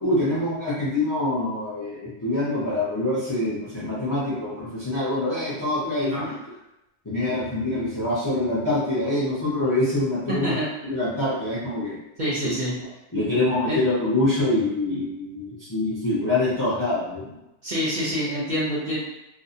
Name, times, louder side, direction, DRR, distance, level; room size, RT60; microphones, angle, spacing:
voice 1, 0.0-6.1 7.0-10.5 10.8-12.0 12.4-12.5 13.1-17.3, left 2 dB, 25° left, -8 dB, 0.5 m, -25 dB
voice 2, 6.0-6.3 10.4-10.7 12.2-12.8 13.7-13.8 17.6-19.0, equal, 50° right, -7 dB, 0.6 m, -26 dB
2.5 x 2.0 x 2.7 m, 0.92 s
omnidirectional pair, 1.2 m